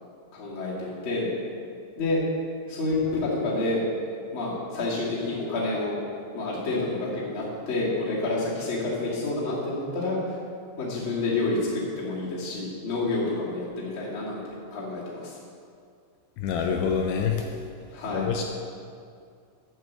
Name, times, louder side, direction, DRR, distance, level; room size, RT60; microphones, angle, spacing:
voice 1, 0.3-1.3 2.0-2.2 2.7-3.8 4.3-6.0 6.3-10.4 10.8-15.4 17.9-18.3, left 2 dB, 35° left, -7 dB, 2.3 m, -29 dB
voice 2, 16.4-17.4 18.1-18.4, left 6 dB, 90° left, 2 dB, 2.3 m, -26 dB
9.4 x 6.3 x 7.5 m, 2.3 s
omnidirectional pair, 5.6 m